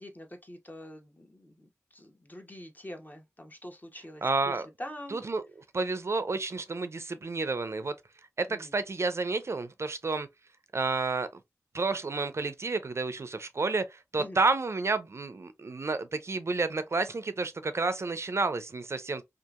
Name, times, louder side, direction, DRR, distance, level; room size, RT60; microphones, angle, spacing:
voice 1, 0.0-4.5 4.8-5.2 8.5-8.7 14.2-14.4, left 1 dB, 30° left, 0.8 m, -45 dB
voice 2, 4.2-4.7 5.1-5.4 5.7-7.9 8.4-10.3 10.7-11.3 11.7-19.2, right 3 dB, 50° right, 0.4 m, -30 dB
2.7 x 2.5 x 2.3 m
cardioid pair, 45°, 6 cm